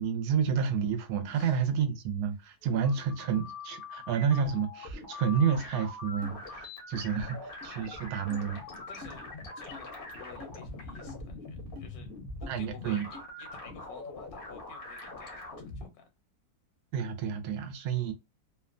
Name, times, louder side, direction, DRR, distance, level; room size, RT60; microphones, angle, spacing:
voice 1, 0.0-8.6 12.5-13.1 16.9-18.1, right 7 dB, 80° right, 1.1 m, -30 dB
voice 2, 1.3-1.6 8.9-12.1 12.4-16.0, left 6 dB, 80° left, 1.1 m, -52 dB
sound 1, 2.6-15.9, left 2 dB, 55° left, 0.6 m, -43 dB
sound 2, 6.2-6.4 6.9-7.0 7.6-7.7 8.3-8.4 9.0-9.2 9.7-9.9 10.4-10.6 11.1-11.2 11.8-11.9 12.4-12.5 13.1-13.2, left 4 dB, 55° right, 0.8 m, -46 dB
2.8 x 2.1 x 2.4 m
omnidirectional pair, 1.6 m